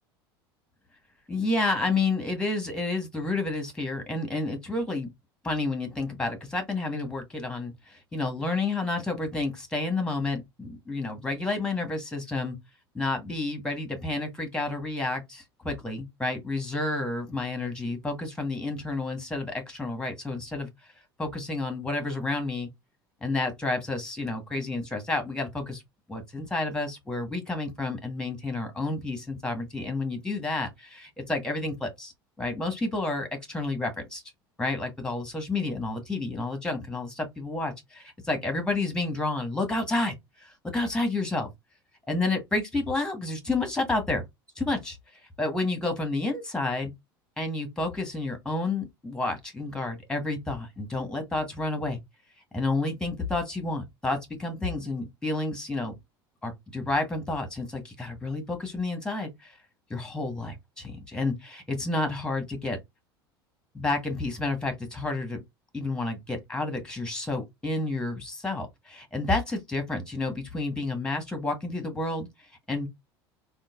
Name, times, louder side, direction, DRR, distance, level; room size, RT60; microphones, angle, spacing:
voice 1, 1.3-5.1 5.4-12.6 12.9-20.7 21.2-22.7 23.2-25.8 26.1-32.1 32.4-34.2 34.6-41.5 42.1-44.2 44.6-45.0 45.4-46.9 47.4-52.0 52.5-56.0 56.4-59.5 59.9-62.8 63.7-65.4 65.7-72.3 72.7-72.9, left 2 dB, 5° left, 1.3 m, -30 dB
3.7 x 2.3 x 2.4 m
hypercardioid pair, 75°, 13 cm